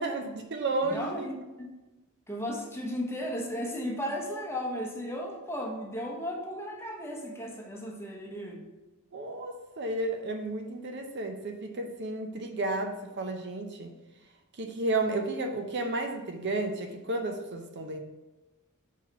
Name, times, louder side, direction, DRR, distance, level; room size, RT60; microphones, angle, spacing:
voice 1, 0.0-1.3 9.1-13.9 14.6-18.0, right 2 dB, 55° right, 4 dB, 0.6 m, -32 dB
voice 2, 0.8-1.7 2.3-8.6, equal, 10° left, 0 dB, 0.8 m, -35 dB
4.5 x 4.2 x 5.7 m, 1.1 s
head